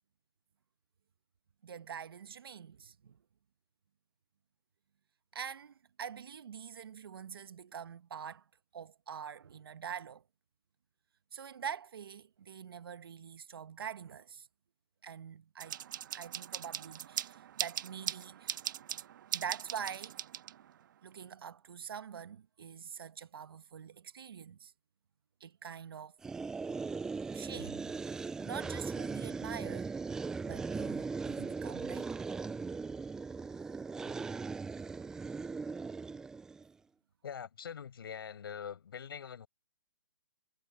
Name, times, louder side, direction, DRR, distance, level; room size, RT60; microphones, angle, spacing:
voice 1, 1.6-3.2 5.3-8.4 8.7-10.2 11.3-14.5 15.0-15.8 16.1-18.6 19.3-20.2 21.0-24.7 25.4-26.1 27.3-28.0 28.4-29.9 30.4-32.1 34.0-34.3, right 8 dB, 70° right, 1.5 m, -45 dB
sound 1, 15.6-20.8, right 10 dB, 55° right, 1.6 m, -40 dB
sound 2, 26.2-36.7, right 4 dB, 5° right, 0.4 m, -39 dB
voice 2, 37.2-39.5, left 7 dB, 70° left, 7.0 m, -43 dB
hypercardioid pair, 150°, 13 cm